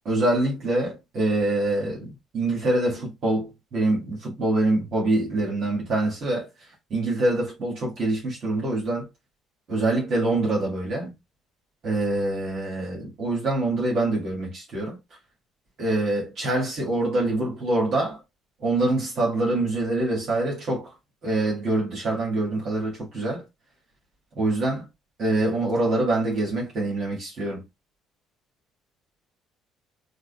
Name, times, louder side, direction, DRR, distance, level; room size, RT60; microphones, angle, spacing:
voice 1, 0.1-6.5 6.9-9.1 9.7-11.1 11.8-15.0 15.8-18.2 18.6-20.9 21.2-23.4 24.4-24.9 25.2-27.6, right 2 dB, 55° right, 2.1 m, -25 dB
4.7 x 2.6 x 2.4 m
hypercardioid pair, 55°, 0 cm